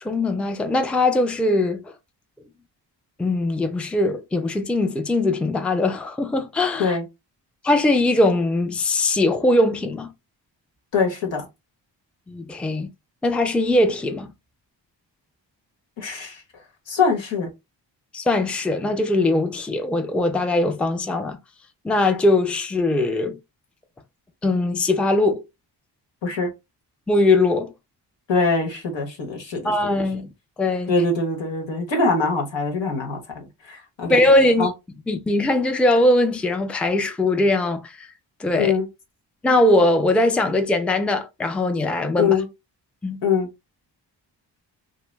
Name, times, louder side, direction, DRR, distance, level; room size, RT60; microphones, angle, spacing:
voice 1, 0.0-1.9 3.2-7.0 7.6-10.1 12.3-12.9 13.2-14.3 18.1-21.4 21.8-23.4 24.4-25.4 27.1-27.7 29.6-30.3 30.6-30.9 34.1-34.7 35.1-38.1 38.4-38.7 39.4-42.3 43.0-43.2, left 2 dB, 5° left, 0.4 m, -20 dB
voice 2, 10.9-11.4 16.0-16.4 16.9-17.5 26.2-26.5 28.3-29.7 30.9-34.2 34.6-34.7 38.6-38.9 42.2-42.5 43.2-43.5, left 4 dB, 85° left, 1.2 m, -23 dB
2.8 x 2.1 x 3.2 m
cardioid pair, 70°, 44 cm